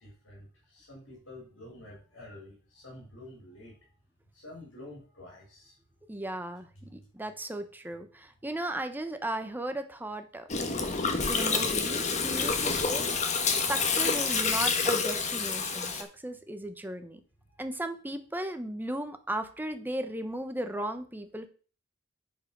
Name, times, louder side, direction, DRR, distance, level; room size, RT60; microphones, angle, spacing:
voice 1, 0.0-3.8 4.3-5.8 17.5-17.6, left 1 dB, 80° left, -4 dB, 4.1 m, -49 dB
voice 2, 6.1-10.5 11.3-13.1 13.6-17.2 17.6-21.5, right 1 dB, 10° right, 8 dB, 0.8 m, -36 dB
Gurgling, 10.5-16.0, left 4 dB, 35° left, 1.3 m, -28 dB
9.0 x 4.7 x 6.0 m, 0.39 s
head